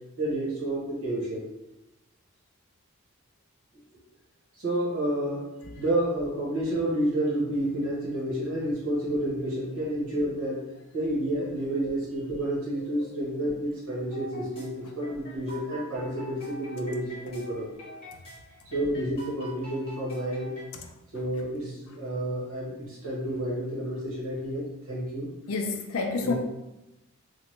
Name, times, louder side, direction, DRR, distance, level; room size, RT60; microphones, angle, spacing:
voice 1, 0.2-1.4 4.5-10.6 10.9-17.8 18.7-20.5 21.1-25.3 26.2-26.3, right 1 dB, 70° right, -7 dB, 1.1 m, -30 dB
sound 1, 14.1-20.7, right 1 dB, 25° left, 0.9 m, -45 dB
voice 2, 25.5-26.3, left 4 dB, 75° left, 3 dB, 0.4 m, -28 dB
2.9 x 2.2 x 3.1 m, 0.98 s
head